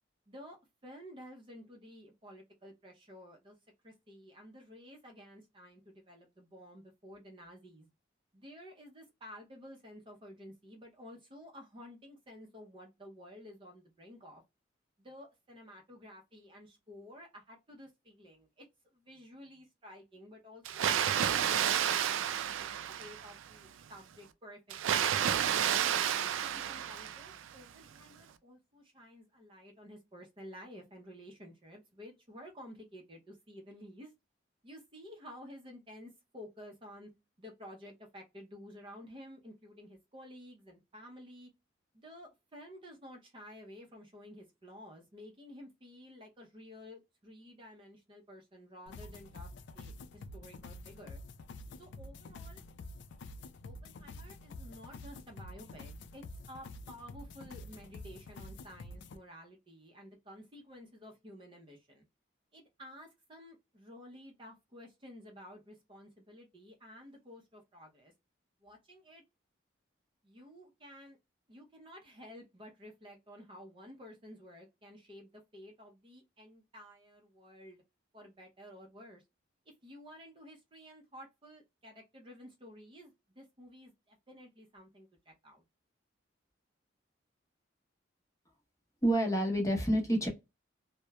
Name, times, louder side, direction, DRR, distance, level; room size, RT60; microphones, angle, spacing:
voice 1, 0.3-0.6 0.8-3.6 3.8-7.9 8.3-14.4 15.0-18.7 18.9-20.6 22.1-22.4 22.9-25.0 25.5-34.1 34.6-37.1 37.4-41.5 41.9-49.5 49.7-51.2 51.8-52.6 53.6-62.0 62.5-68.1 68.6-69.2 70.2-71.2 71.5-77.8 78.1-79.2 79.7-85.6, equal, 25° right, 0.5 m, -52 dB
Water, 20.7-23.5 24.7-27.5, right 9 dB, 90° right, 0.3 m, -31 dB
sound 1, 48.9-59.2, left 2 dB, 65° left, 0.3 m, -48 dB
voice 2, 89.0-90.3, right 1 dB, 15° left, 0.8 m, -28 dB
2.9 x 2.0 x 2.2 m
head